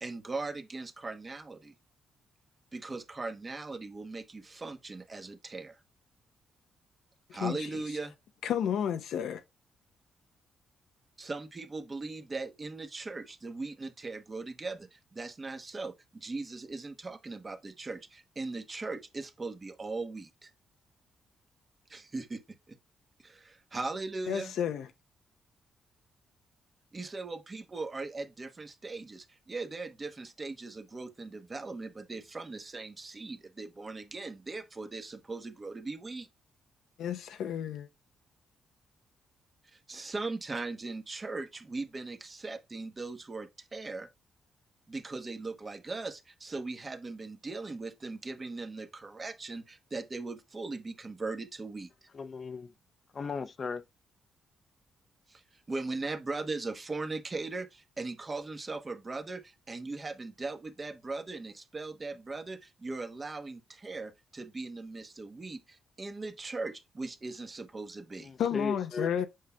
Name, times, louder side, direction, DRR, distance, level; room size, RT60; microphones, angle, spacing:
voice 1, 0.0-1.7 2.7-5.8 7.3-8.1 11.2-20.5 21.9-22.8 23.2-24.5 26.9-36.3 39.7-44.1 44.9-52.1 55.3-55.4 55.7-68.3, right 3 dB, 30° right, 1.0 m, -39 dB
voice 2, 7.3-7.7 8.4-9.4 24.3-24.9 37.0-37.9 68.4-69.3, left 9 dB, 80° left, 0.7 m, -31 dB
voice 3, 52.1-52.7 53.1-53.8 68.2-69.2, left 5 dB, 45° left, 0.6 m, -36 dB
7.6 x 5.6 x 2.2 m
cardioid pair, 95°, 0 cm